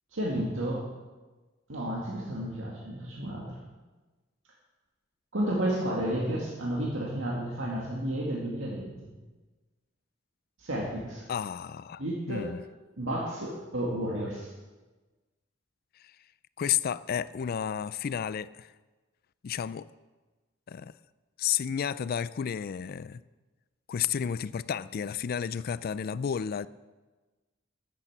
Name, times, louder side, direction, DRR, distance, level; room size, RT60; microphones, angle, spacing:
voice 1, 0.1-0.9 1.7-3.5 5.3-9.1 10.6-11.2 12.0-12.5 13.0-14.5, right 1 dB, 80° right, -3 dB, 2.1 m, -32 dB
voice 2, 11.3-12.6 16.0-16.1 16.6-18.7 19.4-19.9 20.7-20.9 21.4-23.2 23.9-26.7, left 8 dB, 50° left, 17 dB, 0.3 m, -32 dB
12.0 x 8.4 x 7.3 m, 1.2 s
head